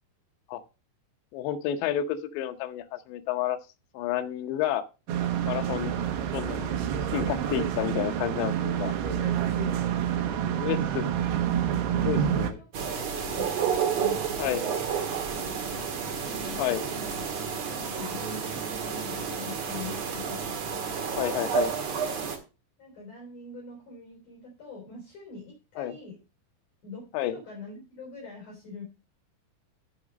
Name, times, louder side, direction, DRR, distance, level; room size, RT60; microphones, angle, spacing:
voice 1, 1.3-3.6 3.9-4.9 5.5-5.9 6.3-6.8 7.1-8.9 10.6-11.1 11.9-12.6 14.4-14.7 16.6-16.9 21.2-21.7 25.8-25.9 27.1-27.4, left 11 dB, 80° left, 6 dB, 3.0 m, -30 dB
sound 1, 5.1-12.5, right 9 dB, 70° right, 2.9 m, -28 dB
voice 2, 5.8-6.2 8.6-9.8 11.0-11.3 12.2-13.5 13.9-15.1 15.3-15.6 16.1-17.3 17.8-20.5 22.8-26.2 26.8-28.8, left 4 dB, 45° left, 0 dB, 4.5 m, -44 dB
sound 2, 12.7-22.4, right 7 dB, 50° right, 2.2 m, -31 dB
9.7 x 7.3 x 5.2 m, 0.30 s
omnidirectional pair, 5.3 m